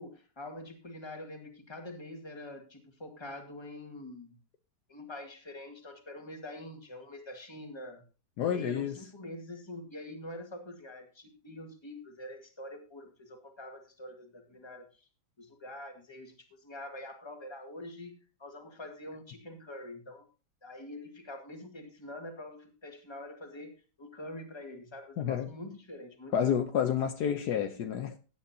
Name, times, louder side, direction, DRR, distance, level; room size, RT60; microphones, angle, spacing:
voice 1, 0.0-4.4 4.9-8.0 8.5-15.1 15.4-20.3 20.6-26.6, left 1 dB, 15° left, 1.7 m, -45 dB
voice 2, 8.4-9.0 25.2-25.5 26.3-28.2, left 8 dB, 70° left, 1.3 m, -29 dB
16.0 x 9.3 x 2.8 m
omnidirectional pair, 2.0 m